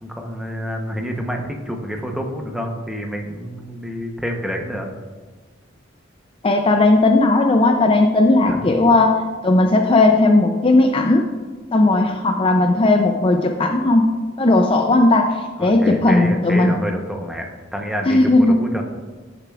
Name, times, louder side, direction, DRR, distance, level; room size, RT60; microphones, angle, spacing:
voice 1, 0.0-4.9 8.5-8.6 15.6-18.8, equal, ahead, 2 dB, 0.8 m, -28 dB
voice 2, 6.4-9.2 9.4-11.3 11.7-14.1 14.4-16.8 18.1-18.6, left 2 dB, 30° left, 4 dB, 0.4 m, -16 dB
14.0 x 6.6 x 2.4 m, 1.4 s
head